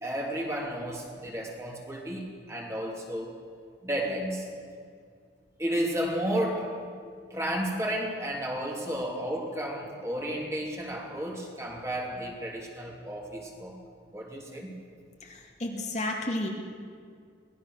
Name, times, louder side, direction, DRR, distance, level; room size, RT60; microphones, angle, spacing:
voice 1, 0.0-3.4 3.8-4.5 5.6-6.7 7.3-13.8 14.1-14.7, equal, 15° right, -1 dB, 2.9 m, -32 dB
voice 2, 15.2-16.5, left 1 dB, 35° left, 0 dB, 2.2 m, -32 dB
24.5 x 18.5 x 6.5 m, 2.2 s
head